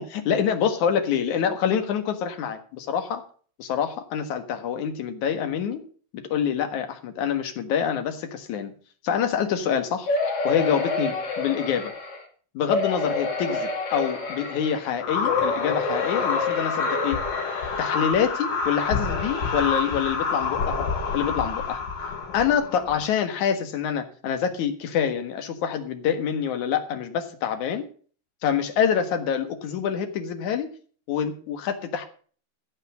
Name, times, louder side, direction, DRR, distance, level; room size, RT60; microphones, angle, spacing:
voice 1, 0.0-3.2 3.6-5.8 6.1-8.7 9.0-10.1 10.4-11.9 12.5-17.2 17.8-20.9 21.1-21.8 22.3-27.8 28.4-30.7 31.1-32.0, left 8 dB, 65° left, 7 dB, 2.9 m, -26 dB
sound 1, 10.1-12.2 12.7-14.9 15.2-18.1 18.7-18.8 19.1-19.2, left 3 dB, 45° left, 3.4 m, -28 dB
sound 2, 15.0-23.1, left 5 dB, 80° left, 4.1 m, -28 dB
15.5 x 5.6 x 8.2 m, 0.43 s
omnidirectional pair, 4.0 m